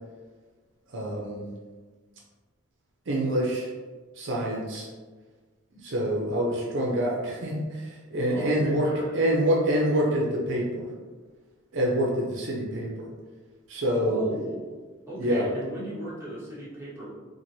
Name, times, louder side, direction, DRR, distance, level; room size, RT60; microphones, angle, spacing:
voice 1, 0.9-1.5 3.1-3.7 4.2-4.9 5.8-10.9 11.7-13.1 13.7-14.2 15.2-15.5, equal, 65° right, -2 dB, 0.5 m, -26 dB
voice 2, 8.2-9.1 13.9-14.7 15.1-17.1, right 1 dB, 10° right, -9 dB, 0.9 m, -36 dB
3.0 x 2.5 x 2.7 m, 1.4 s
head